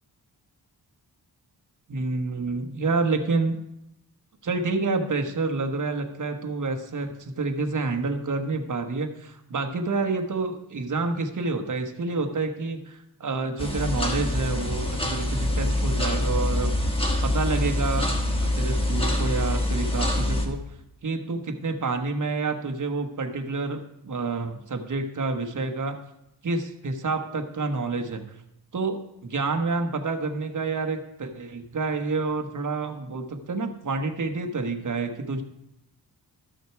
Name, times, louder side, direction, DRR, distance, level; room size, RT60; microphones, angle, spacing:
voice 1, 1.9-3.6 4.4-16.8 17.2-18.1 18.4-20.6 21.0-26.0 26.4-28.3 28.7-35.4, right 3 dB, 50° right, 4 dB, 1.2 m, -28 dB
sound 1, 13.6-20.5, left 1 dB, 15° left, 1.3 m, -25 dB
12.5 x 6.4 x 4.6 m, 0.85 s
wide cardioid pair, 115°, 40 cm